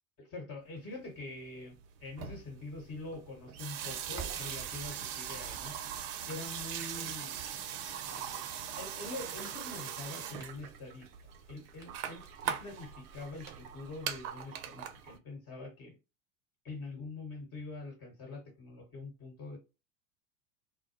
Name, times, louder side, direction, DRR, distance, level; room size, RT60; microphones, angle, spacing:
voice 1, 0.2-5.7 6.3-7.3 7.9-8.5 8.7-11.1 11.5-16.0 16.6-19.6, left 3 dB, 35° left, 1.3 m, -45 dB
sound 1, 1.2-1.3 1.5-15.2, right 9 dB, 45° right, 0.5 m, -41 dB
Crackle, 3.9-14.3, right 6 dB, 10° right, 1.1 m, -54 dB
2.2 x 2.0 x 2.8 m
figure-of-eight pair, 85°, 40 cm